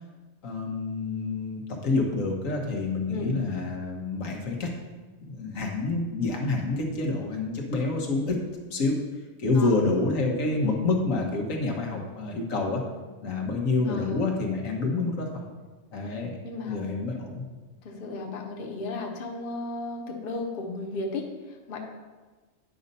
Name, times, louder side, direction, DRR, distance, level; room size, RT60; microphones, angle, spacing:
voice 1, 0.4-4.7 5.2-8.4 8.7-8.9 9.4-12.8 13.2-15.3 15.9-16.3 16.7-17.4, left 3 dB, 90° left, 0 dB, 1.5 m, -27 dB
voice 2, 13.8-14.2 16.1-16.8 17.8-21.8, left 3 dB, 45° left, 2 dB, 1.0 m, -35 dB
9.4 x 5.3 x 4.1 m, 1.3 s
omnidirectional pair, 1.3 m